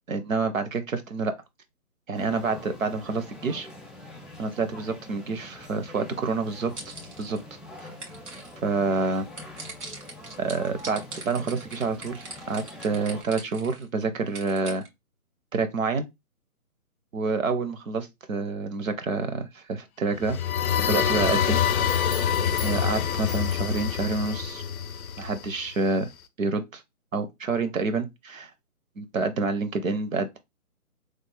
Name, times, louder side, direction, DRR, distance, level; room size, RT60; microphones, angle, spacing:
voice 1, 0.1-1.3 2.1-3.7 4.4-7.4 7.8-7.9 8.6-9.3 10.4-14.8 15.5-16.1 17.1-20.4 20.9-21.6 21.9-22.0 22.6-24.6 25.2-26.1 26.4-26.8 27.1-28.5 29.0-30.4, right 4 dB, 60° right, 0.7 m, -28 dB
sound 1, 2.1-13.2, left 1 dB, ahead, 0.3 m, -45 dB
sound 2, 6.6-7.4 7.8-8.5 9.4-13.9 14.3-14.9, right 2 dB, 85° right, 1.8 m, -41 dB
sound 3, 20.2-25.9, left 8 dB, 70° left, 0.5 m, -26 dB
3.2 x 2.0 x 3.2 m
hypercardioid pair, 170°, 45 cm